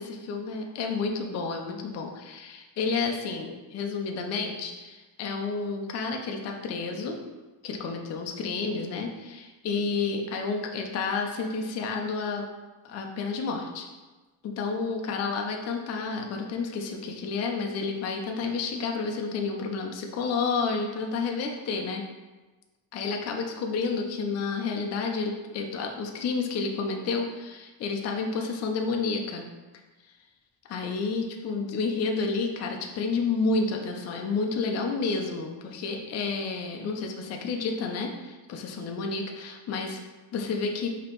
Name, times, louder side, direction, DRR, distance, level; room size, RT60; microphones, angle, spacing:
voice 1, 0.0-7.2 7.6-12.5 12.8-13.9 14.4-22.0 22.9-29.5 30.7-40.0 40.3-40.9, left 4 dB, 40° left, 2 dB, 0.4 m, -30 dB
5.0 x 2.9 x 3.0 m, 1.2 s
cardioid pair, 145°, 42 cm